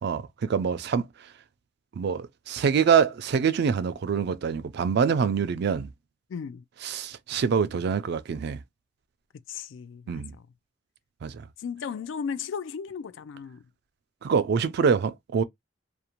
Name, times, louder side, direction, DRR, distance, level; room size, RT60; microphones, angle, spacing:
voice 1, 0.0-1.1 1.9-5.9 6.8-8.6 10.1-10.3 11.2-11.5 14.2-15.4, right 6 dB, 60° right, 0.3 m, -25 dB
voice 2, 6.3-6.6 9.5-10.4 11.6-13.6, left 6 dB, 80° left, 0.3 m, -35 dB
2.5 x 2.1 x 2.9 m
head